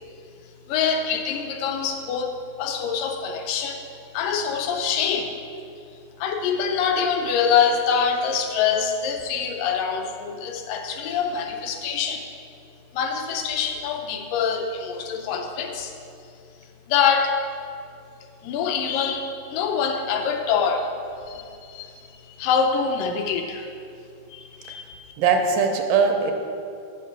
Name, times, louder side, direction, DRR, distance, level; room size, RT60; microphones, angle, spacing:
voice 1, 0.7-3.8 4.1-5.4 6.2-12.2 12.9-15.9 16.9-17.4 18.4-20.9 21.3-21.9 22.3-23.7 24.3-25.1, left 6 dB, 80° left, 4 dB, 2.4 m, -25 dB
voice 2, 25.2-26.3, right 5 dB, 80° right, 4 dB, 2.3 m, -20 dB
9.5 x 5.2 x 7.0 m, 2.5 s
omnidirectional pair, 3.9 m